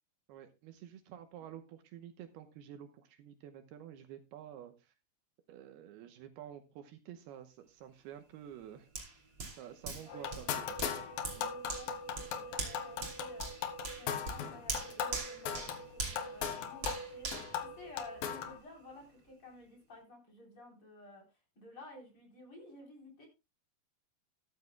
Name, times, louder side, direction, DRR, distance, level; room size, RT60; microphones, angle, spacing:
voice 1, 0.3-4.9 5.5-8.9 9.6-10.7 11.3-11.6, right 10 dB, 75° right, 7 dB, 2.7 m, -50 dB
Hands, 8.9-18.5 18.9-19.1, right 3 dB, 30° right, 2.9 m, -43 dB
voice 2, 9.9-11.0 11.5-11.9 12.2-13.5 14.0-21.2 21.6-23.3, left 2 dB, 30° left, 1 dB, 4.5 m, -54 dB
sound 1, 10.1-18.6, left 7 dB, 65° left, 2.7 m, -39 dB
13.5 x 13.0 x 2.2 m, 0.26 s
omnidirectional pair, 4.9 m